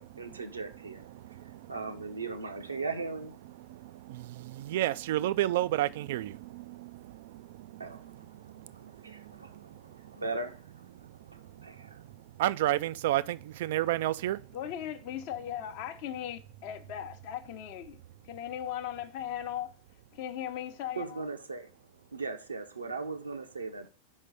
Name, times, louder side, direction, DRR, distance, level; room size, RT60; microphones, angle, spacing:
voice 1, 0.0-1.4 1.7-3.4 7.8-10.9 11.3-12.0 21.0-21.7 22.0-23.9, right 3 dB, 80° right, 1.0 m, -39 dB
voice 2, 4.7-6.3 12.4-14.4, right 14 dB, 55° right, 0.4 m, -28 dB
voice 3, 14.5-18.0 18.2-19.7 20.1-21.3, left 10 dB, 45° left, 0.8 m, -38 dB
5.4 x 5.3 x 6.6 m
figure-of-eight pair, 90°, 0 cm